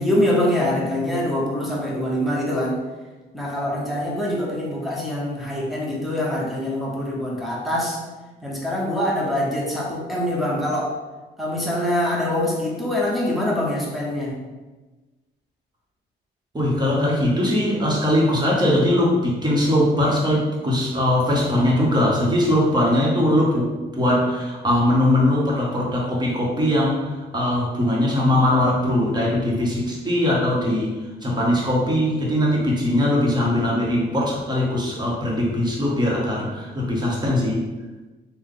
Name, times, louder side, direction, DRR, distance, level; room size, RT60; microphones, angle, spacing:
voice 1, 0.0-2.8 3.3-8.0 8.4-10.9 11.4-14.4, left 1 dB, ahead, -4 dB, 1.0 m, -24 dB
voice 2, 16.5-37.6, left 1 dB, 20° right, -4 dB, 1.2 m, -21 dB
3.5 x 2.3 x 3.7 m, 1.2 s
cardioid pair, 90°, 20 cm